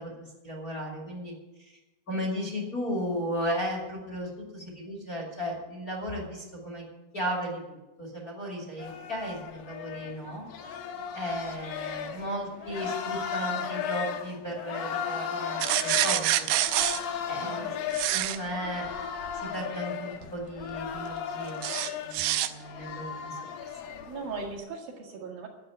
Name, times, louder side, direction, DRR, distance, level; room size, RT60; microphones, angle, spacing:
voice 1, 0.0-1.3 2.1-6.8 7.1-10.4 11.1-16.5 17.3-17.7 18.0-18.9 19.3-21.6 22.0-23.4, equal, 25° left, -1 dB, 2.5 m, -35 dB
sound 1, 8.8-24.6, left 7 dB, 70° left, 2.7 m, -36 dB
sound 2, 15.6-17.0 17.9-18.4 21.6-22.5, right 14 dB, 90° right, 2.6 m, -26 dB
voice 2, 22.6-22.9 24.1-25.5, right 4 dB, 70° right, 0 dB, 3.8 m, -39 dB
11.0 x 8.5 x 8.9 m, 1.1 s
omnidirectional pair, 4.5 m